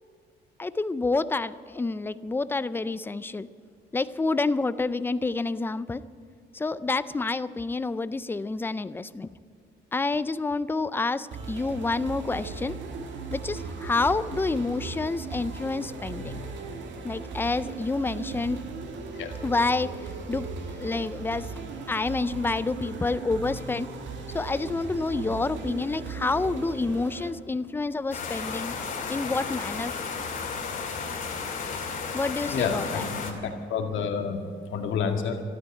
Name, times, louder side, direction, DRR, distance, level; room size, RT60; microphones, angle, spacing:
voice 1, 0.6-3.5 3.9-6.0 6.5-9.3 9.9-12.8 13.3-16.4 17.0-18.6 19.4-21.5 21.9-23.9 24.3-28.8 29.1-30.0 32.1-33.0, left 3 dB, 10° left, 15 dB, 0.4 m, -28 dB
sound 1, 11.3-27.3, right 4 dB, 75° right, 1.9 m, -37 dB
sound 2, 28.1-33.3, left 5 dB, 45° left, 2.5 m, -33 dB
voice 2, 32.5-35.4, left 6 dB, 90° left, 4 dB, 1.9 m, -30 dB
13.0 x 13.0 x 8.3 m, 2.3 s
cardioid pair, 160°, 19 cm